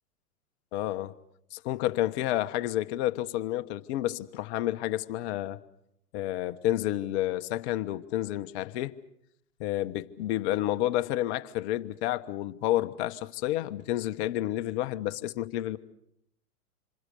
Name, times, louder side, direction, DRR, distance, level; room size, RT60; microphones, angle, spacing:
voice 1, 0.7-1.2 1.5-5.6 6.1-8.9 9.6-15.8, left 14 dB, 45° left, 1.2 m, -30 dB
27.0 x 27.0 x 6.7 m
hypercardioid pair, 110°, 45 cm